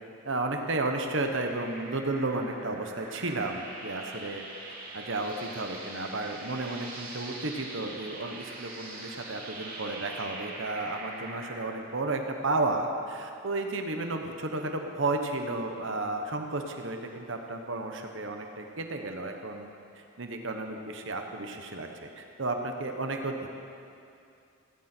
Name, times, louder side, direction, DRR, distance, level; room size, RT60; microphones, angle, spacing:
voice 1, 0.2-4.4 4.9-19.7 20.0-23.5, right 2 dB, 60° right, 4 dB, 1.1 m, -33 dB
sound 1, 0.9-11.7, right 2 dB, 40° right, 2.9 m, -43 dB
17.0 x 16.0 x 4.5 m, 2.5 s
head